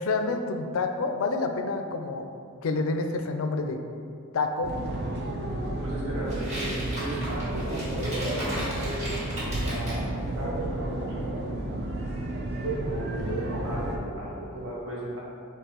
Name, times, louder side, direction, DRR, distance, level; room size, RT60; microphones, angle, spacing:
voice 1, 0.0-2.3 2.6-3.8 4.3-4.7, left 3 dB, 65° left, 6 dB, 0.4 m, -28 dB
sound 1, 4.6-14.0, right 1 dB, 50° right, 0.5 m, -31 dB
voice 2, 5.8-9.1 9.6-11.3 12.8-13.1 13.4-15.2, right 1 dB, 85° right, -6 dB, 1.3 m, -36 dB
sound 2, 6.3-10.0, equal, 30° right, 1.4 m, -36 dB
4.4 x 2.8 x 4.3 m, 2.4 s
head